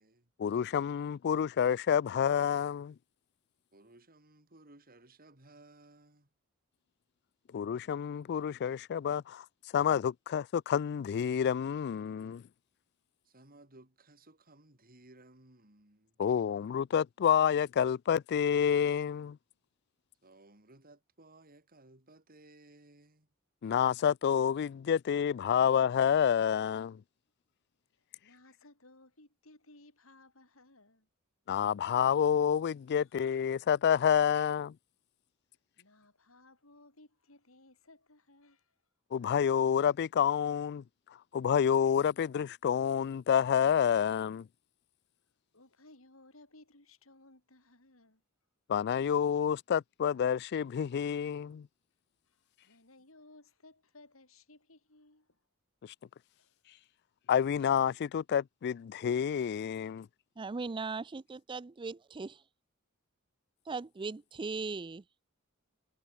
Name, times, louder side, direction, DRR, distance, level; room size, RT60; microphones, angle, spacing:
voice 1, 0.4-2.9 7.5-9.5 9.7-12.4 16.2-19.4 23.6-27.0 31.5-34.7 39.1-40.8 41.3-44.5 48.7-51.7 55.8-55.9 57.3-60.1, left 8 dB, 50° left, 0.3 m, -28 dB
voice 2, 3.7-6.3 13.2-16.2 20.2-23.3, right 2 dB, 45° right, 4.7 m, -59 dB
voice 3, 28.0-31.1 33.0-33.2 35.8-38.8 45.5-48.2 52.2-55.4 56.3-56.6, left 2 dB, 70° left, 6.6 m, -60 dB
voice 4, 60.4-62.3 63.7-65.0, right 4 dB, 25° right, 0.4 m, -38 dB
head